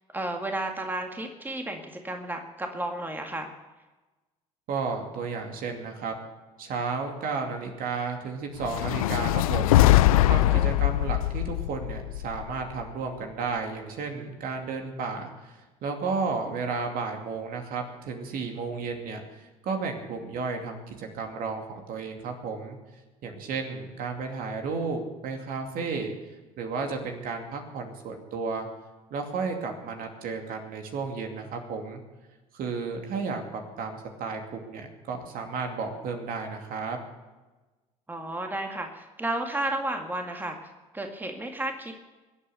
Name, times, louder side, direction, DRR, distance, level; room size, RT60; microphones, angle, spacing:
voice 1, 0.1-3.5 10.4-10.7 38.1-41.9, right 1 dB, 10° right, 3 dB, 2.0 m, -33 dB
voice 2, 4.7-6.1 6.6-9.8 10.2-15.3 15.8-19.2 19.6-22.8 23.2-26.1 26.6-28.7 29.1-32.0 32.5-37.0, right 4 dB, 50° right, 3 dB, 2.6 m, -33 dB
sound 1, 8.6-12.9, left 15 dB, 75° left, 0.5 m, -22 dB
22.5 x 8.7 x 7.0 m, 1.2 s
figure-of-eight pair, 60°, 18 cm